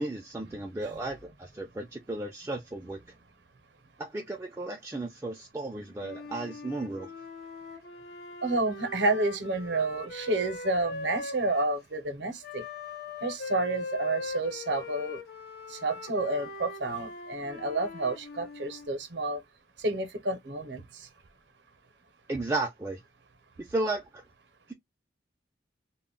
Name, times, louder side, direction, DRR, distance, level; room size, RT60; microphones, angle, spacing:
voice 1, 0.0-3.0 4.0-7.1 22.3-23.0 23.6-24.2, right 2 dB, 15° right, 0.4 m, -34 dB
Wind instrument woodwind instrument, 6.0-11.7 12.4-18.9, left 3 dB, 60° left, 0.6 m, -41 dB
voice 2, 8.4-12.6 13.2-15.2 15.7-19.4 19.8-21.1, right 2 dB, 70° right, 0.6 m, -30 dB
2.1 x 2.1 x 3.7 m
head